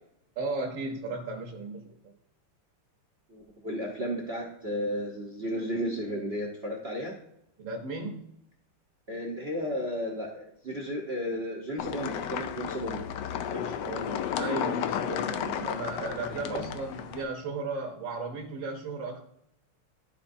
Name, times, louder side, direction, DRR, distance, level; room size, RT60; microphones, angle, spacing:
voice 1, 0.4-2.1 7.6-8.3 13.5-19.2, right 3 dB, 65° right, 2 dB, 1.5 m, -35 dB
voice 2, 3.3-7.1 9.1-13.0 16.3-16.6, equal, 50° right, 0 dB, 0.7 m, -33 dB
sound 1, 11.8-17.2, left 9 dB, 75° left, 1.0 m, -33 dB
12.5 x 4.4 x 2.6 m, 0.78 s
omnidirectional pair, 2.4 m